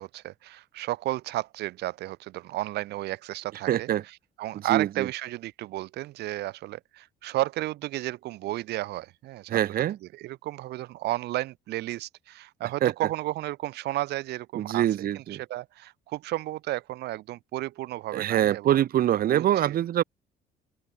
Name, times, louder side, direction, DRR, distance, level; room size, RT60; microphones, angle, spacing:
voice 1, 0.0-3.9 4.4-9.6 10.2-18.8 19.3-19.8, right 16 dB, 75° right, 1.9 m, -33 dB
voice 2, 3.7-4.0 4.5-5.1 9.5-10.0 12.8-13.1 14.5-15.4 18.1-20.0, right 12 dB, 60° right, 2.4 m, -24 dB
cardioid pair, 110°, 17 cm